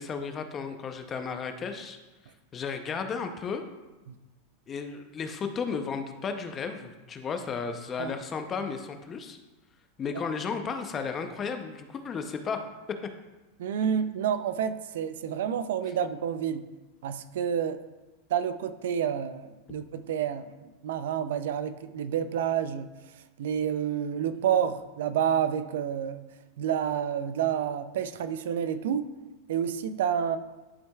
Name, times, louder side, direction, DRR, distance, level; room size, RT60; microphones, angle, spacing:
voice 1, 0.0-2.0 2.5-3.6 4.7-9.4 10.0-12.6, left 5 dB, 25° left, 7 dB, 0.6 m, -34 dB
voice 2, 13.6-16.7 17.0-17.8 18.3-22.9 23.4-26.3 26.6-29.1 29.5-30.4, right 8 dB, 80° right, 12 dB, 0.4 m, -29 dB
11.0 x 4.3 x 2.3 m, 1.1 s
supercardioid pair, 135°, 0 cm